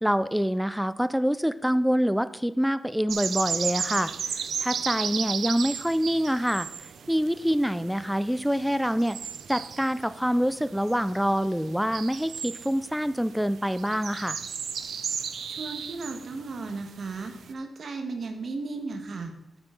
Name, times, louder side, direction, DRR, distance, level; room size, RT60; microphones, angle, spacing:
voice 1, 0.0-4.1 4.6-6.7 7.1-9.2 9.5-14.4, equal, ahead, 14 dB, 0.3 m, -26 dB
sound 1, 3.1-17.5, right 7 dB, 75° right, 0.5 m, -35 dB
voice 2, 15.4-19.3, right 3 dB, 55° right, 6 dB, 1.3 m, -35 dB
8.8 x 8.2 x 3.8 m, 0.92 s
wide cardioid pair, 120°, 0 cm